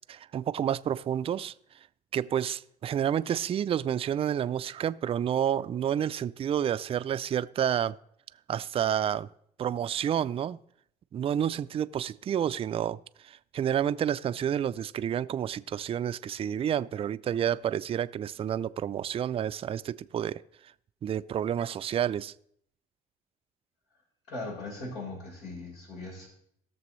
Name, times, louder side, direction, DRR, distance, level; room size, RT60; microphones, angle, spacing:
voice 1, 0.1-1.5 2.1-8.0 8.5-9.3 9.6-10.6 11.1-13.0 13.2-20.4 21.0-22.3, right 9 dB, 35° right, 0.3 m, -29 dB
voice 2, 24.3-26.3, left 2 dB, 90° left, 4.3 m, -39 dB
18.0 x 6.8 x 3.1 m
cardioid pair, 110°, 17 cm